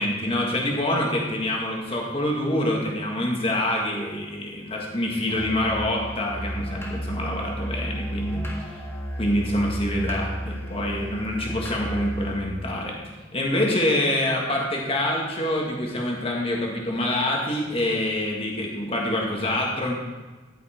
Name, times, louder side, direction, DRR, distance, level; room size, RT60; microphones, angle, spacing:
voice 1, 0.0-8.4 9.2-13.0 13.3-20.0, left 1 dB, 30° left, -1 dB, 1.6 m, -26 dB
Musical instrument, 5.3-12.4, equal, 15° left, 1.7 m, -33 dB
14.0 x 5.7 x 4.3 m, 1.3 s
head